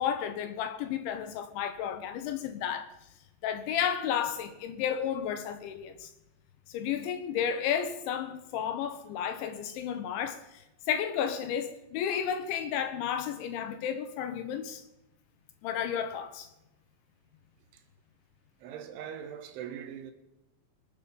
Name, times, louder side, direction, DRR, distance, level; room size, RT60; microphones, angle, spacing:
voice 1, 0.0-2.9 3.4-6.1 6.7-14.8 15.6-16.5, left 8 dB, 75° left, 3.1 m, -32 dB
voice 2, 18.6-20.1, right 9 dB, 75° right, 3.5 m, -41 dB
26.0 x 9.1 x 5.4 m
omnidirectional pair, 5.8 m